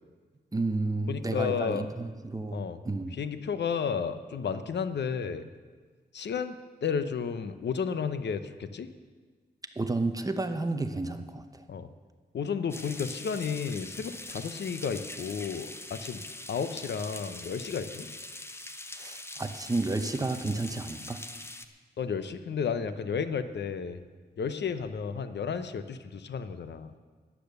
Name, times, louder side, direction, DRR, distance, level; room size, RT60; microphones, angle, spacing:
voice 1, 0.5-3.2 9.8-11.6 19.0-21.2, right 2 dB, 20° right, 8 dB, 0.8 m, -31 dB
voice 2, 1.1-1.9 2.5-2.8 3.2-5.5 6.1-8.9 11.7-11.9 12.3-16.2 16.5-18.1 22.0-24.0 24.4-26.9, left 6 dB, 75° left, 11 dB, 0.7 m, -32 dB
sound 1, 12.7-21.6, left 2 dB, 15° left, 0.7 m, -43 dB
13.5 x 10.0 x 6.7 m, 1.5 s
wide cardioid pair, 130°, 18 cm